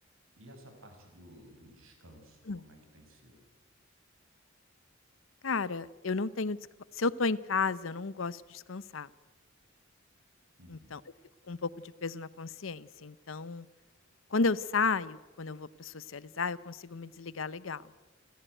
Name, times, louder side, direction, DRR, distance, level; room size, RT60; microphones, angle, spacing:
voice 1, 0.4-3.5 10.6-10.9, equal, 90° right, 5 dB, 6.2 m, -55 dB
voice 2, 5.4-6.6 6.9-9.1 10.7-11.0 11.5-13.7 14.3-17.9, left 4 dB, 80° left, 18 dB, 0.8 m, -33 dB
28.5 x 15.5 x 9.2 m, 1.2 s
head